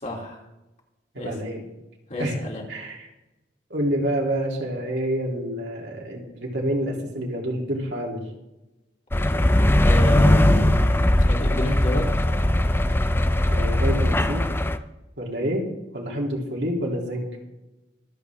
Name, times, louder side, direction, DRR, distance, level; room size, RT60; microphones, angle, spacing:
voice 1, 0.0-0.4 1.1-1.3 2.1-2.6 9.8-10.8 11.2-12.0, left 1 dB, 40° left, -1 dB, 3.0 m, -29 dB
voice 2, 1.1-1.6 2.2-2.4 2.7-3.1 3.7-8.2 13.5-14.4 15.2-15.6 15.9-17.3, equal, 65° right, -1 dB, 3.1 m, -27 dB
sound 1, 9.1-14.8, left 1 dB, 10° left, 0.5 m, -19 dB
24.0 x 8.4 x 3.6 m, 0.99 s
head